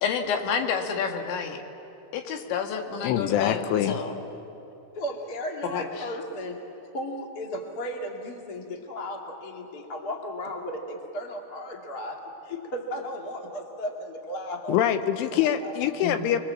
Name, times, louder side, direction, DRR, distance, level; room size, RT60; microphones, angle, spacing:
voice 1, 0.0-1.6 2.1-4.1 5.7-6.1 16.0-16.2, left 6 dB, 70° left, 4 dB, 3.8 m, -29 dB
voice 2, 3.0-4.0 14.7-16.4, left 10 dB, 90° left, 9 dB, 3.4 m, -24 dB
voice 3, 4.9-6.6 6.9-14.8 15.6-15.7, equal, 40° left, 2 dB, 1.4 m, -35 dB
28.5 x 22.0 x 7.5 m, 2.9 s
omnidirectional pair, 5.5 m